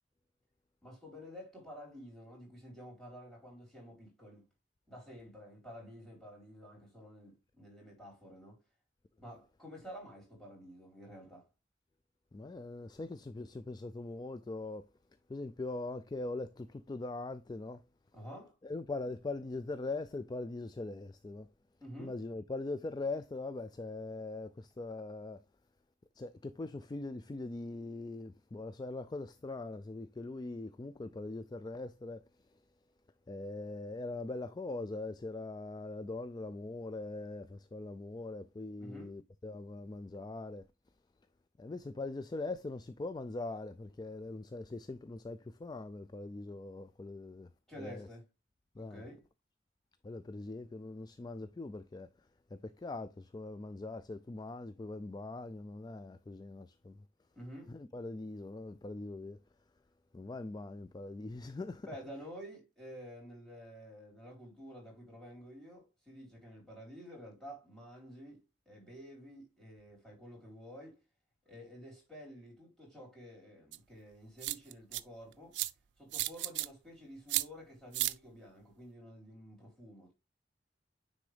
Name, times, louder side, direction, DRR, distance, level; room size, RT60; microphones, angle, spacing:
voice 1, 0.8-4.5 4.9-8.6 9.2-11.5 18.1-18.6 21.8-22.1 38.8-39.1 47.7-48.3 48.8-49.2 57.3-57.7 61.8-68.4 68.7-71.0 71.5-75.6 76.0-80.1, equal, ahead, 4.2 m, -50 dB
voice 2, 12.3-14.9 15.3-17.8 18.6-21.5 22.0-25.4 26.2-32.3 33.3-40.7 41.6-47.5 47.8-48.1 48.8-49.0 50.0-52.1 52.5-57.0 57.7-59.4 60.1-61.9, left 2 dB, 25° left, 0.3 m, -41 dB
sound 1, 73.7-73.8 74.4-75.0 75.5-75.7 76.1-76.7 77.3-77.4 77.9-78.1, right 17 dB, 80° right, 0.4 m, -33 dB
9.8 x 3.8 x 3.3 m
head